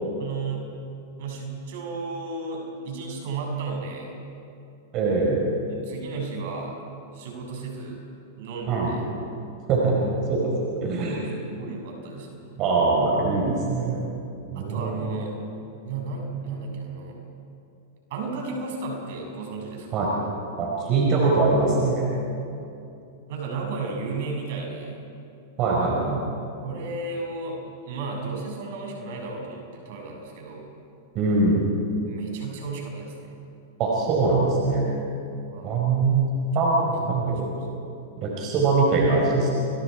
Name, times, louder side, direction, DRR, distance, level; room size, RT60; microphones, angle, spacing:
voice 1, 0.2-0.7 1.2-4.2 5.7-6.8 7.1-8.0 8.4-9.1 11.4-12.6 14.5-15.4 15.9-17.2 18.1-20.0 23.3-25.0 26.6-30.7 32.1-33.4 35.5-35.9 37.3-37.7, right 3 dB, 65° right, 0 dB, 6.9 m, -34 dB
voice 2, 4.9-5.4 8.7-8.9 9.7-9.9 10.3-10.5 10.8-11.2 12.6-14.0 14.5-15.1 19.9-20.1 20.6-22.0 25.6-26.2 31.1-31.7 33.8-34.9 35.6-37.5 38.2-39.5, right 3 dB, 45° right, -2 dB, 5.1 m, -22 dB
30.0 x 23.0 x 4.8 m, 2.7 s
hypercardioid pair, 110°, 0 cm